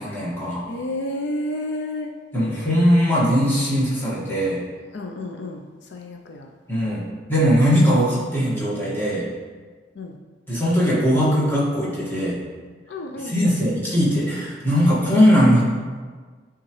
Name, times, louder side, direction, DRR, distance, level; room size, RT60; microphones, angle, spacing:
voice 1, 0.0-0.7 2.3-4.6 6.7-9.2 10.5-12.4 13.2-15.6, equal, 10° left, -8 dB, 1.7 m, -20 dB
voice 2, 0.6-2.1 4.9-5.6 5.9-6.5 10.0-10.1 12.9-13.7, left 1 dB, 65° left, 1 dB, 0.5 m, -31 dB
9.6 x 3.7 x 3.1 m, 1.5 s
head